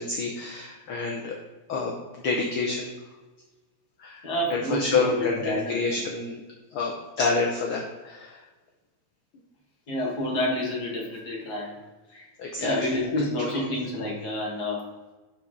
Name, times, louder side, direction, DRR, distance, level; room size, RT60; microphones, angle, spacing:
voice 1, 0.0-1.3 1.7-1.9 2.2-2.9 4.0-4.2 4.5-6.4 6.7-8.4 12.4-12.9, left 4 dB, 70° left, 0 dB, 1.3 m, -28 dB
voice 2, 4.2-6.0 9.9-11.8 12.1-12.3 12.6-15.1, left 1 dB, 40° left, -2 dB, 1.8 m, -29 dB
11.5 x 4.7 x 3.7 m, 1.2 s
omnidirectional pair, 3.4 m